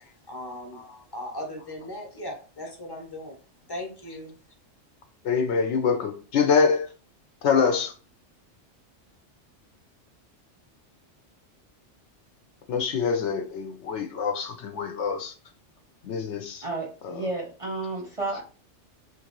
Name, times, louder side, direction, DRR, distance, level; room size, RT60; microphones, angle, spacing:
voice 1, 0.3-3.4 3.7-4.4, left 1 dB, 25° left, 0.8 m, -38 dB
voice 2, 5.2-6.9 7.4-7.9 12.7-15.3 16.0-16.7 17.0-17.3 18.3-18.4, left 5 dB, 75° left, 0.9 m, -25 dB
voice 3, 16.6-18.4, right 2 dB, 35° right, 0.6 m, -32 dB
3.2 x 2.5 x 2.9 m
omnidirectional pair, 1.2 m